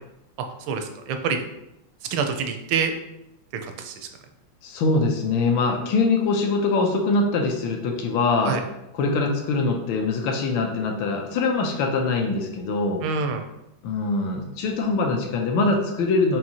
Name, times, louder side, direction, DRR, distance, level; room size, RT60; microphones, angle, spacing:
voice 1, 0.7-1.4 2.1-2.9 3.6-3.9 8.4-8.6 13.0-13.4, right 5 dB, 80° right, 6 dB, 1.4 m, -26 dB
voice 2, 4.6-8.6 8.9-13.0 13.8-16.4, left 3 dB, 75° left, 3 dB, 1.3 m, -23 dB
5.5 x 2.6 x 2.8 m, 0.86 s
omnidirectional pair, 2.3 m